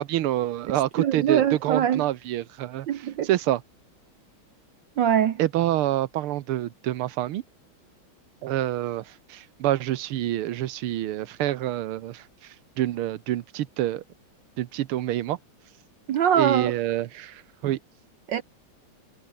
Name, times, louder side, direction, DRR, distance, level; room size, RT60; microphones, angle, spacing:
voice 1, 0.0-2.9 3.2-3.6 5.4-7.4 8.4-14.0 14.6-15.4 16.4-17.8, right 14 dB, 90° right, 1.8 m, -27 dB
voice 2, 1.0-2.0 2.9-3.3 5.0-5.4 16.1-16.7 18.3-18.4, right 9 dB, 65° right, 1.5 m, -22 dB
omnidirectional pair, 2.3 m